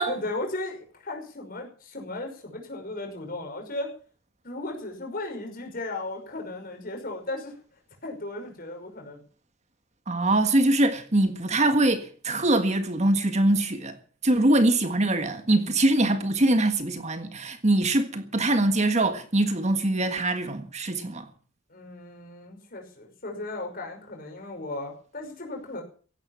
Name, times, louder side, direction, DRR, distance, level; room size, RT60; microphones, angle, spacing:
voice 1, 0.1-3.9 4.4-7.5 8.0-9.2 21.7-25.8, left 2 dB, 45° left, 5.8 m, -36 dB
voice 2, 10.1-14.0 14.2-21.3, right 1 dB, 35° right, 1.7 m, -23 dB
16.5 x 11.5 x 7.4 m
head